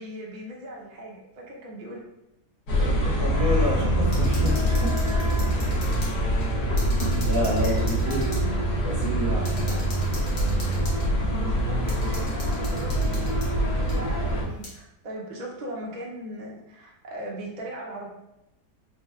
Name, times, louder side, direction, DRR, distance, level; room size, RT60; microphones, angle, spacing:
voice 1, 0.0-2.0 2.8-3.0 5.3-5.4 5.9-6.3 7.6-8.4 9.6-10.0 11.1-18.1, right 1 dB, 50° right, -3 dB, 0.5 m, -39 dB
sound 1, 2.7-14.4, equal, 80° left, 1.5 m, -24 dB
voice 2, 2.8-4.9 7.1-8.2 8.8-9.5, left 1 dB, 15° right, -7 dB, 0.9 m, -29 dB
sound 2, 4.0-6.1 6.4-6.5 6.8-8.4 9.0-9.1 9.5-11.1 11.9-13.5 13.9-14.0 14.6-14.7, left 1 dB, 45° left, 1.3 m, -41 dB
4.3 x 2.7 x 2.3 m, 0.88 s
omnidirectional pair, 1.8 m